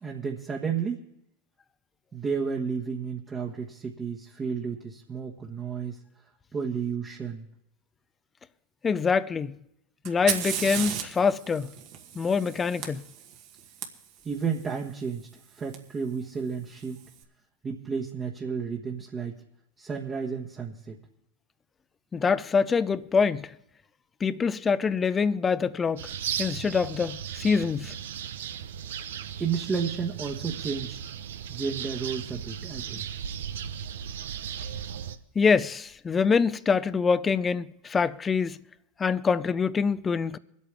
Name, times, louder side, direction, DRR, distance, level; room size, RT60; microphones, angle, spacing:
voice 1, 0.0-1.0 2.1-6.0 6.5-7.4 14.2-15.3 15.5-17.0 17.6-19.3 19.8-21.0 29.4-31.0 31.5-33.0, right 6 dB, 25° right, 1.3 m, -32 dB
voice 2, 8.8-9.6 10.0-11.7 12.2-13.0 22.1-23.5 24.2-26.1 26.4-27.9 35.4-38.6 39.0-40.4, left 5 dB, 25° left, 0.5 m, -25 dB
Fire, 10.1-13.9 15.7-15.8 16.7-17.1, right 9 dB, 55° right, 1.4 m, -34 dB
sound 1, 26.0-35.2, right 9 dB, 80° right, 0.6 m, -36 dB
24.5 x 8.4 x 3.4 m
hypercardioid pair, 95°, 0 cm